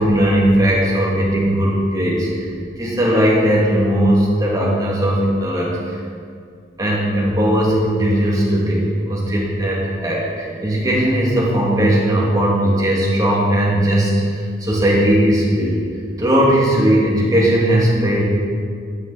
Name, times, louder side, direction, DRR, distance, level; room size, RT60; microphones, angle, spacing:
voice 1, 0.0-2.5 2.8-5.7 6.8-14.1 14.6-15.8 16.2-18.2, right 1 dB, 20° right, -5 dB, 2.3 m, -17 dB
11.5 x 9.0 x 4.1 m, 2.2 s
head